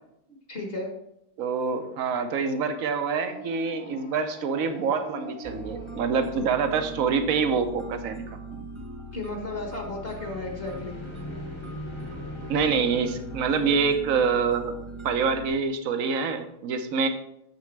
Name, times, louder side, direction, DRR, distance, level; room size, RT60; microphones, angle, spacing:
voice 1, 0.5-0.9 9.1-11.0, left 2 dB, 35° left, 0 dB, 1.5 m, -34 dB
voice 2, 1.4-8.3 8.5-8.6 12.5-14.7 15.0-17.1, right 5 dB, 60° right, 8 dB, 1.0 m, -26 dB
sound 1, 2.9-7.3 9.9-14.8, right 1 dB, 20° left, 1.1 m, -42 dB
sound 2, 5.4-15.5, right 1 dB, 20° right, 1.1 m, -40 dB
8.3 x 6.8 x 3.3 m, 0.79 s
omnidirectional pair, 2.0 m